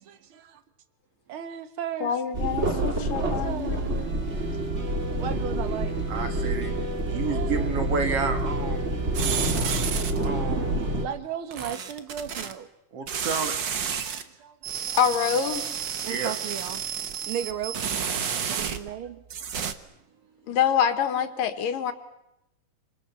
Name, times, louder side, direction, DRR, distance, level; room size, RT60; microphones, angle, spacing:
voice 1, 0.1-0.6 1.3-2.1 2.4-4.2 5.2-5.9 7.1-7.7 9.7-9.8 10.9-12.7 14.1-14.5 16.0-16.8 17.3-18.0 18.5-19.2, right 9 dB, 65° right, 1.3 m, -35 dB
voice 2, 2.0-4.1 15.0-15.8 20.5-21.9, left 8 dB, 70° left, 3.2 m, -26 dB
sound 1, 2.3-11.0, right 1 dB, 25° right, 2.0 m, -28 dB
voice 3, 6.1-6.8 7.1-9.0 10.2-10.7 12.9-13.5 16.0-16.4 17.0-17.1, right 5 dB, 45° right, 2.6 m, -30 dB
sound 2, 9.1-10.3 11.5-12.5 13.1-14.2 14.6-19.0 19.3-19.7, right 7 dB, 85° right, 1.0 m, -31 dB
27.0 x 26.5 x 7.0 m
omnidirectional pair, 4.2 m